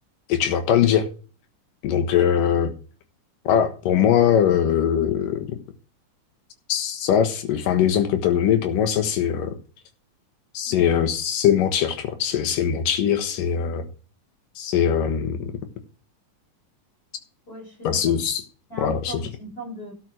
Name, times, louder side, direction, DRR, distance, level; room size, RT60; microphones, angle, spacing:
voice 1, 0.3-1.1 1.8-2.7 3.5-5.6 6.7-9.5 10.5-13.8 14.6-15.5 17.8-18.4 18.8-19.1, left 9 dB, 90° left, 3.1 m, -21 dB
voice 2, 10.7-11.0 17.5-18.2 18.7-19.9, right 1 dB, 15° left, 7.7 m, -38 dB
13.0 x 6.4 x 6.3 m
omnidirectional pair, 3.7 m